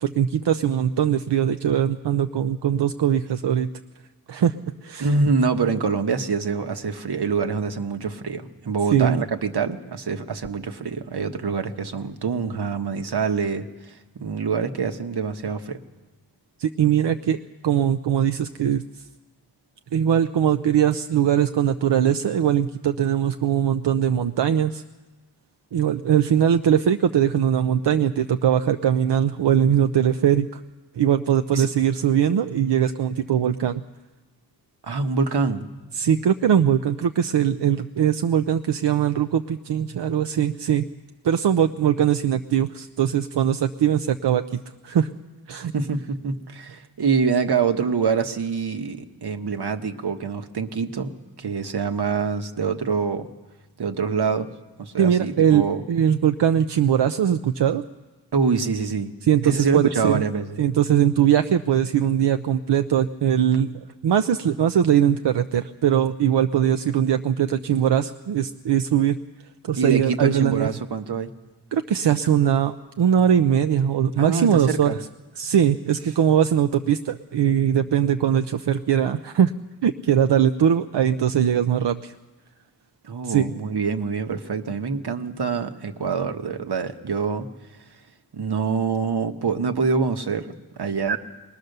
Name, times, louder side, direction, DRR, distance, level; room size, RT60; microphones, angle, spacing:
voice 1, 0.0-3.7 4.3-4.5 4.8-5.1 8.9-9.2 16.6-17.4 17.6-18.8 19.9-24.8 25.7-30.6 31.0-33.8 35.9-40.8 41.2-45.1 45.5-45.7 55.0-57.8 59.2-60.2 60.6-63.7 64.0-69.2 69.6-70.7 71.7-74.9 75.4-79.5 79.8-82.1 83.2-83.5, right 9 dB, 90° right, 8 dB, 0.6 m, -21 dB
voice 2, 5.0-15.8 31.5-31.7 34.8-35.7 45.7-53.3 53.8-54.5 54.8-55.8 58.3-59.1 59.4-60.6 69.8-71.3 74.2-75.0 83.0-87.5 88.3-91.2, right 5 dB, 70° right, 7 dB, 1.3 m, -25 dB
21.0 x 20.0 x 6.7 m, 1.2 s
wide cardioid pair, 90°, 40 cm